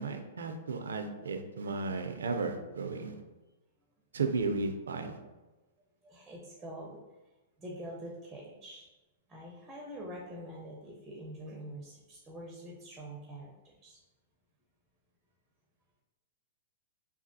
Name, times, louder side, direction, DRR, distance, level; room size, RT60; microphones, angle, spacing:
voice 1, 0.0-3.1 4.1-5.2, right 4 dB, 90° right, 6 dB, 0.4 m, -34 dB
voice 2, 6.0-7.0 7.6-8.9 9.3-14.0, right 1 dB, 15° right, -2 dB, 0.5 m, -45 dB
3.3 x 2.3 x 2.6 m, 1.1 s
hypercardioid pair, 130°, 0 cm